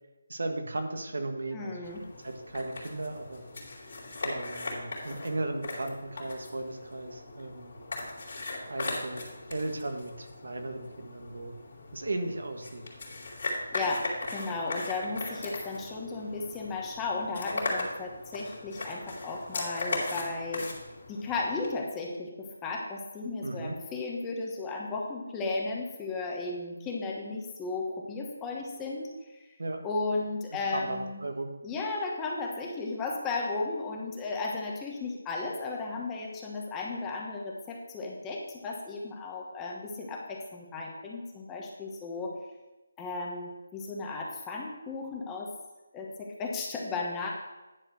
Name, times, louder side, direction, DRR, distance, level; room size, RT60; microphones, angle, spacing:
voice 1, 0.3-1.8 2.2-3.4 4.2-7.7 8.7-9.2 9.5-11.5 11.9-12.8 23.4-23.8 29.6-29.8 30.7-31.5, right 2 dB, 75° right, 5 dB, 1.4 m, -36 dB
voice 2, 1.5-2.1 13.7-20.7 21.1-29.4 29.8-31.2 31.6-42.3 43.0-45.5 45.9-47.3, left 3 dB, 10° left, -1 dB, 1.1 m, -35 dB
sound 1, 1.8-21.7, left 2 dB, 50° left, 3.0 m, -38 dB
10.0 x 4.7 x 6.3 m, 1.1 s
figure-of-eight pair, 170°, 0 cm